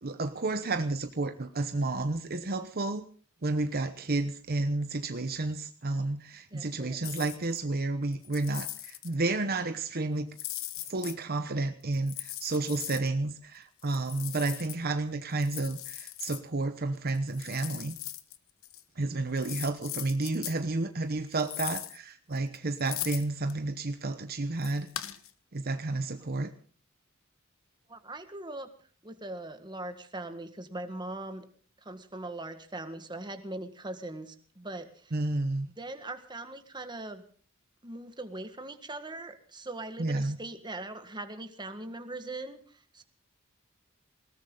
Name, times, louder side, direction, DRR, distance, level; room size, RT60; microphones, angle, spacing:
voice 1, 0.0-3.0 3.4-10.4 10.9-18.0 19.0-24.9 25.5-26.5 35.1-35.7 40.0-40.4, right 2 dB, 50° right, 8 dB, 1.0 m, -31 dB
voice 2, 6.5-7.3 27.9-28.7 29.0-31.4 31.8-35.1 35.8-37.2 37.8-43.0, right 2 dB, 20° right, 8 dB, 1.7 m, -41 dB
sound 1, 7.0-7.6 8.1-9.1 10.3-11.2 11.9-13.1 13.8-14.8 15.4-16.4 17.1-18.4 18.6-18.8 19.4-20.6 21.4-22.0 22.4-23.5 24.6-25.3, left 14 dB, 70° left, 1.2 m, -39 dB
20.5 x 18.0 x 3.9 m, 0.43 s
head